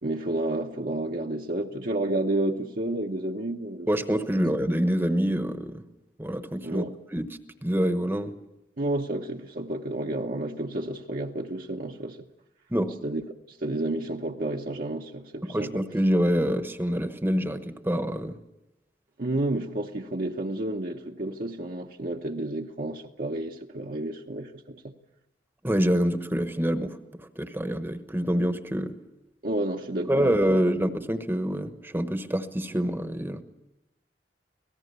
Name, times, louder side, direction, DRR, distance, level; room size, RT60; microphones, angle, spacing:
voice 1, 0.0-4.3 6.6-6.9 8.8-12.2 13.0-15.8 19.2-25.0 29.4-30.6, right 1 dB, 55° right, 1 dB, 1.0 m, -31 dB
voice 2, 3.9-5.8 6.2-6.8 7.1-7.3 7.6-8.3 12.7-12.9 15.4-18.4 25.6-28.9 30.1-33.4, equal, 15° right, 9 dB, 1.0 m, -26 dB
25.5 x 18.0 x 6.8 m, 0.97 s
head